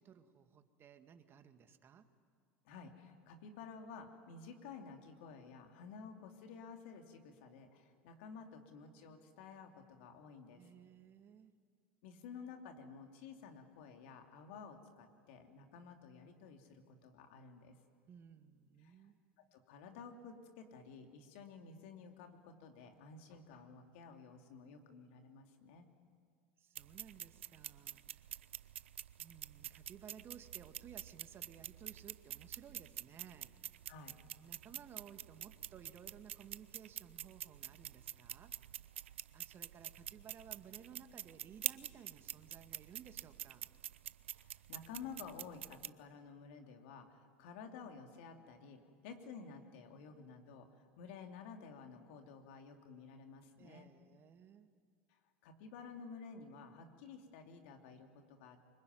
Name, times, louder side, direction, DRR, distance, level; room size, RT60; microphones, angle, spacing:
voice 1, 0.0-2.1 10.5-11.5 18.1-19.2 26.6-28.3 29.2-33.5 34.4-38.5 39.3-43.7 53.6-54.7, right 8 dB, 35° right, 8 dB, 2.0 m, -57 dB
voice 2, 2.6-10.6 12.0-17.7 18.8-18.9 19.5-25.9 33.9-34.2 44.3-53.9 55.1-58.7, left 5 dB, 70° left, 4 dB, 3.0 m, -53 dB
sound 1, 26.8-45.9, right 12 dB, 90° right, 0.6 m, -47 dB
24.5 x 22.0 x 9.5 m, 2.1 s
hypercardioid pair, 95°, 6 cm